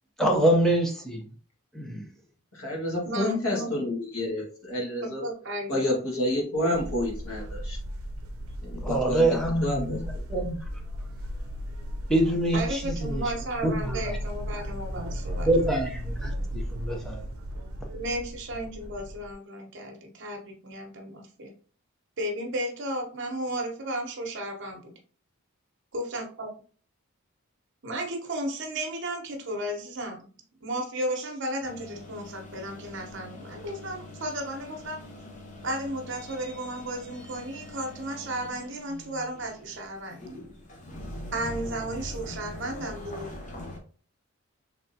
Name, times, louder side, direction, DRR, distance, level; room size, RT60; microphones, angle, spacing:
voice 1, 0.2-1.2 1.7-2.1 8.8-10.0 10.3-10.6 12.1-13.2 13.6-14.0 15.4-16.3 16.7-17.3, right 1 dB, ahead, 0.6 m, -25 dB
voice 2, 2.5-5.2 5.7-7.8 8.6-10.2, left 1 dB, 85° left, 1.7 m, -29 dB
voice 3, 3.1-3.8 5.0-5.8 12.5-15.5 17.9-21.5 22.2-24.9 25.9-26.5 27.8-30.3 30.6-35.0 35.6-40.2 41.3-43.3, right 1 dB, 55° right, 0.9 m, -34 dB
sound 1, 6.7-19.3, equal, 80° right, 0.6 m, -35 dB
sound 2, 31.6-43.8, left 1 dB, 35° left, 0.8 m, -43 dB
3.5 x 3.3 x 2.7 m
head